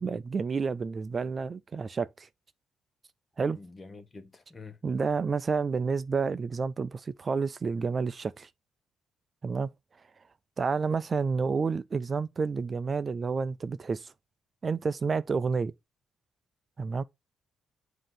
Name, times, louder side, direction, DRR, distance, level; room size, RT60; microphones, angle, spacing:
voice 1, 0.0-2.3 3.4-3.6 4.8-8.5 9.4-9.7 10.6-14.1 14.6-15.7 16.8-17.0, right 5 dB, 35° right, 0.4 m, -30 dB
voice 2, 3.5-4.8, left 4 dB, 30° left, 1.3 m, -47 dB
7.7 x 2.9 x 5.7 m
cardioid pair, 90°, 0 cm